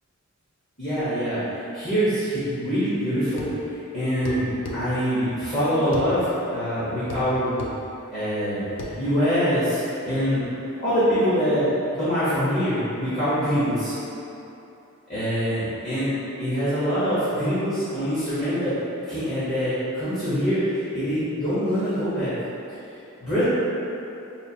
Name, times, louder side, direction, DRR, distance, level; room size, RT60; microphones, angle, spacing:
voice 1, 0.8-3.5 3.9-7.5 8.1-8.6 9.0-10.4 10.8-11.7 11.9-14.0 15.1-16.1 16.4-18.7 19.0-22.3 23.2-23.4, equal, 35° left, -14 dB, 1.0 m, -24 dB
sound 1, 3.4-3.6 4.3-4.8 5.9-6.1 7.1-7.3 7.6-7.8 8.8-9.0, left 2 dB, 55° left, 0.4 m, -33 dB
5.5 x 2.5 x 2.8 m, 2.8 s
head